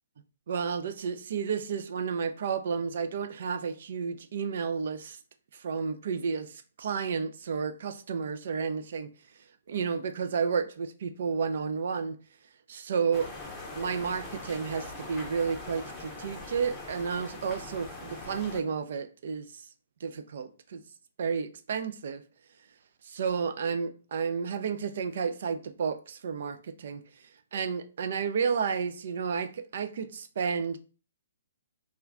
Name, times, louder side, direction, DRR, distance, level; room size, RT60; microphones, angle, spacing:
voice 1, 0.5-5.2 5.5-9.1 9.7-12.2 12.7-13.3 13.7-19.7 20.0-20.8 21.2-22.2 23.0-27.0 27.5-30.8, right 6 dB, 60° right, 0.3 m, -31 dB
sound 1, 13.1-18.6, left 2 dB, 15° left, 0.6 m, -42 dB
2.3 x 2.2 x 3.5 m
hypercardioid pair, 130°, 0 cm